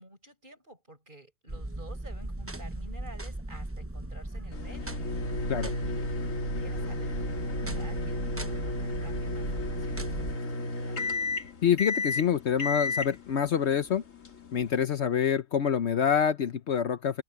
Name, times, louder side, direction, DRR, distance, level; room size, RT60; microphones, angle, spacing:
voice 1, 0.0-5.0 5.4-5.5 5.8-6.1 6.6-11.0, right 1 dB, 40° right, 8.2 m, -51 dB
sound 1, 1.5-10.4, right 1 dB, 10° right, 0.9 m, -38 dB
sound 2, 4.5-14.8, left 2 dB, 90° left, 2.6 m, -33 dB
voice 2, 11.6-14.0 14.5-17.2, left 8 dB, 60° left, 1.0 m, -26 dB
omnidirectional pair, 1.3 m